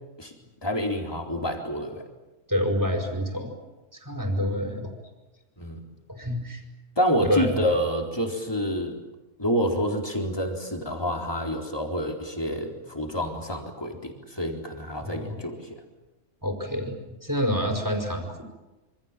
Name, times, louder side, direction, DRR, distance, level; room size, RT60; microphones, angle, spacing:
voice 1, 0.6-2.0 5.6-5.8 7.0-9.0 9.4-15.8, equal, 20° left, 1 dB, 4.1 m, -28 dB
voice 2, 2.5-3.5 4.0-4.9 6.1-6.6 7.2-7.5 15.0-15.4 16.4-16.9 17.2-18.4, equal, 15° right, 4 dB, 5.1 m, -27 dB
27.5 x 26.5 x 7.5 m, 1.1 s
omnidirectional pair, 1.3 m